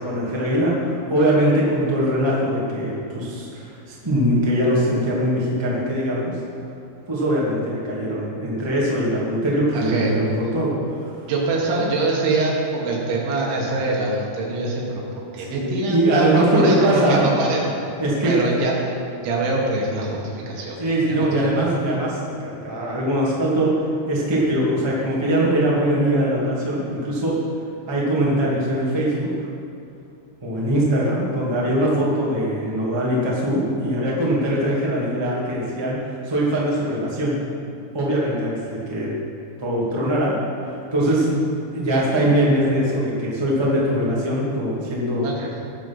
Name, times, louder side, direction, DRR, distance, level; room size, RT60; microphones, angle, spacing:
voice 1, 0.0-6.3 7.1-10.8 11.7-11.8 15.4-17.2 18.0-18.6 20.8-27.4 27.9-29.3 30.4-37.3 37.9-39.1 39.6-40.3 40.9-41.3 41.7-45.3, right 1 dB, 15° right, -6 dB, 1.0 m, -21 dB
voice 2, 9.7-10.2 11.3-17.6 18.3-18.9 19.2-20.8 21.1-21.5 45.2-45.5, right 2 dB, 80° right, -3 dB, 4.4 m, -24 dB
18.5 x 6.9 x 5.6 m, 2.6 s
omnidirectional pair, 5.3 m